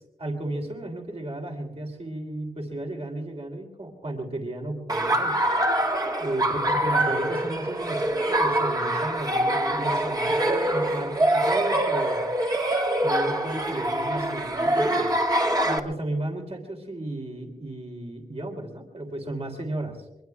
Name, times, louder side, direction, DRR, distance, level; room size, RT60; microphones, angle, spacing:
voice 1, 0.2-5.4 6.2-12.2 13.0-15.1 15.6-20.0, right 1 dB, 45° right, 3 dB, 3.1 m, -34 dB
Laughter, 4.9-15.8, right 1 dB, 25° right, 1.7 m, -24 dB
23.0 x 23.0 x 2.4 m, 0.96 s
cardioid pair, 65°, 15 cm